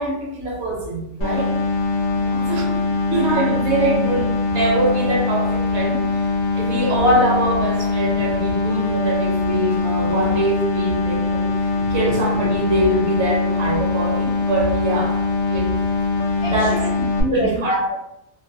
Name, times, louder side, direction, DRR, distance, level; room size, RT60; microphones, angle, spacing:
voice 1, 0.0-1.5 2.5-2.8 3.1-6.0 6.6-11.4 11.9-15.2 15.5-15.7 16.4-16.8 17.3-17.9, right 2 dB, 65° right, 0 dB, 0.9 m, -23 dB
sound 1, 1.2-17.2, left 3 dB, 85° left, 1.0 m, -22 dB
voice 2, 2.1-2.6 11.4-11.9 16.4-17.9, equal, 60° left, -3 dB, 0.7 m, -27 dB
2.5 x 2.2 x 2.6 m, 0.83 s
omnidirectional pair, 1.3 m